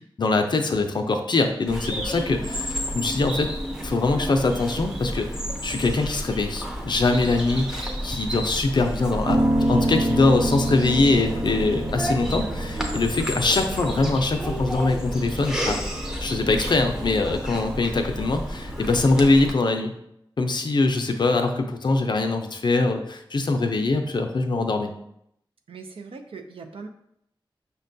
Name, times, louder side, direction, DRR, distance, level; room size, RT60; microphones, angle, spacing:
voice 1, 0.2-3.5 3.8-5.3 5.6-9.4 9.7-15.8 16.2-19.9 20.4-24.9, left 3 dB, 55° left, 5 dB, 0.4 m, -23 dB
Bird vocalization bird call bird song, 1.7-19.5, equal, 5° right, 0.5 m, -32 dB
sound 1, 2.0-20.1, equal, 70° right, 1.0 m, -42 dB
Piano, 9.2-19.4, right 1 dB, 45° right, 0.7 m, -29 dB
voice 2, 25.7-26.9, right 4 dB, 90° right, 5 dB, 0.4 m, -40 dB
5.6 x 2.2 x 2.6 m, 0.75 s
wide cardioid pair, 90°, 9 cm